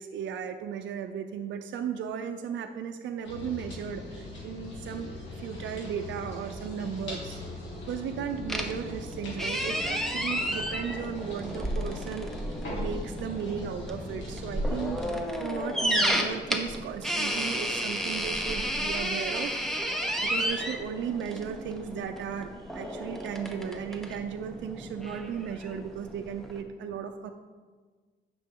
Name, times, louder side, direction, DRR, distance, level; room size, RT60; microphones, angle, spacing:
voice 1, 0.0-5.1 5.4-7.4 7.9-27.3, right 7 dB, 80° right, 5 dB, 0.5 m, -36 dB
sound 1, 3.2-15.1, left 2 dB, 85° left, 2.7 m, -41 dB
sound 2, 8.5-26.6, equal, ahead, 0.9 m, -32 dB
9.6 x 6.0 x 3.7 m, 1.5 s
cardioid pair, 120°, 19 cm